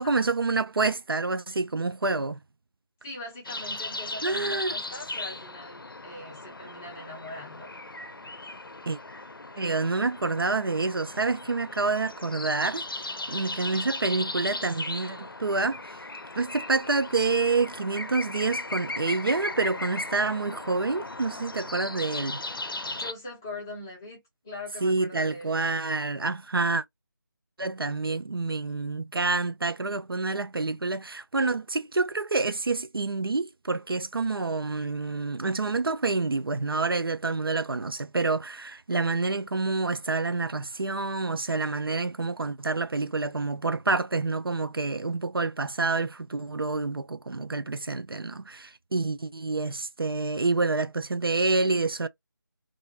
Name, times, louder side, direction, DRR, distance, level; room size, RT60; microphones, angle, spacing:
voice 1, 0.0-2.4 4.2-4.8 8.9-9.0 9.6-12.8 13.3-16.0 16.4-22.4 24.8-26.8 27.6-52.1, right 3 dB, 75° right, 0.4 m, -28 dB
voice 2, 3.0-7.7 23.0-25.5, left 2 dB, 10° left, 0.5 m, -41 dB
sound 1, 3.4-23.1, left 2 dB, 75° left, 0.5 m, -37 dB
2.5 x 2.4 x 2.6 m
figure-of-eight pair, 160°, 12 cm